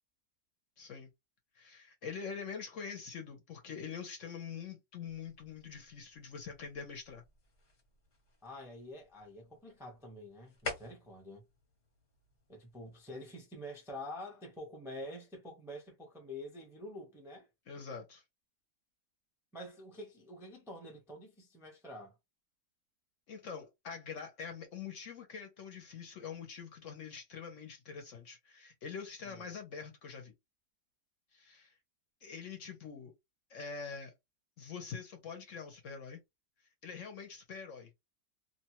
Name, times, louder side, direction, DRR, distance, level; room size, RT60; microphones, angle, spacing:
voice 1, 0.8-1.1 1.5-7.2 17.7-18.2 23.3-30.3 31.3-31.8 32.2-33.1 33.5-34.1 34.6-36.2 36.8-37.9, left 6 dB, 60° left, 0.9 m, -45 dB
sound 1, 5.1-13.0, left 3 dB, 35° left, 0.9 m, -50 dB
voice 2, 8.4-11.4 12.5-17.5 19.5-22.1 29.2-29.6, left 1 dB, 5° right, 0.4 m, -47 dB
2.8 x 2.2 x 2.9 m
omnidirectional pair, 1.7 m